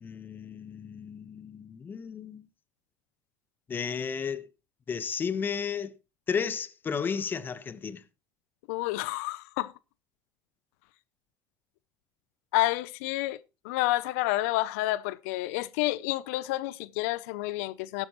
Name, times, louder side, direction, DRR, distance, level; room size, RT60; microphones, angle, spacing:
voice 1, 0.0-2.4 3.7-4.5 4.9-5.9 6.3-8.0, left 6 dB, 25° left, 1.1 m, -33 dB
voice 2, 8.7-9.7 12.5-13.4 13.6-18.1, left 17 dB, 80° left, 0.5 m, -29 dB
12.5 x 12.0 x 3.0 m
supercardioid pair, 130°, 8 cm